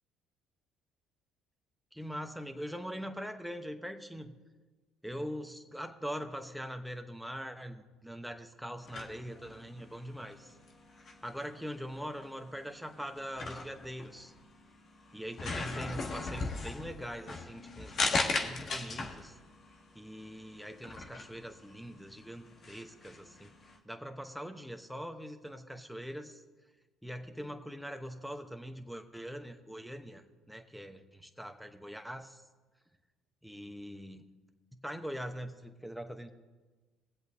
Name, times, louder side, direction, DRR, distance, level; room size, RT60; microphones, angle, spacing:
voice 1, 1.9-4.3 5.0-10.5 11.2-14.3 15.1-19.4 19.9-23.5 23.8-26.4 27.0-32.4 33.4-34.3 34.8-36.3, equal, ahead, 5 dB, 1.0 m, -42 dB
sound 1, 8.8-23.8, left 3 dB, 50° left, 1.4 m, -39 dB
21.5 x 7.9 x 2.8 m, 1.3 s
hypercardioid pair, 65°, 0 cm